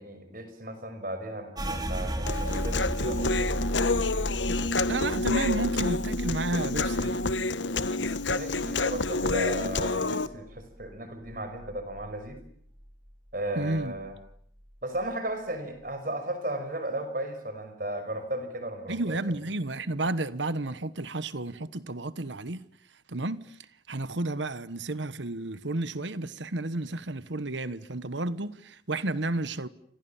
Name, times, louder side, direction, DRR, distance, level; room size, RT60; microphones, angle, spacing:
voice 1, 0.0-3.6 8.3-12.4 13.3-14.1 14.8-19.2, right 1 dB, 50° right, 5.8 m, -35 dB
sound 1, 1.6-11.0 11.3-12.5 12.8-13.3 13.7-14.3, equal, 20° right, 3.0 m, -35 dB
Human voice, 2.3-10.3, left 3 dB, 80° left, 1.3 m, -28 dB
voice 2, 4.9-7.2 13.5-13.9 18.9-22.7 23.1-23.5 23.9-29.7, right 2 dB, 80° right, 1.3 m, -31 dB
29.5 x 26.0 x 7.2 m
head